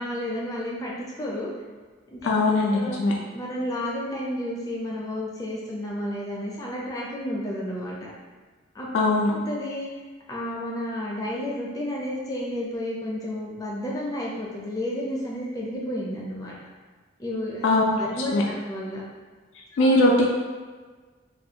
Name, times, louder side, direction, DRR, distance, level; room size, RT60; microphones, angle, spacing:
voice 1, 0.0-1.5 2.1-2.2 2.7-3.0 3.3-8.1 8.7-8.9 9.3-9.9 10.3-16.6 17.2-17.6 18.0-19.0 19.7-20.0, left 1 dB, 20° left, -4 dB, 0.4 m, -31 dB
voice 2, 2.2-3.1 8.9-9.3 17.6-18.0 18.3-18.4 19.8-20.3, left 2 dB, 85° left, -2 dB, 0.3 m, -20 dB
2.4 x 2.2 x 2.7 m, 1.4 s
head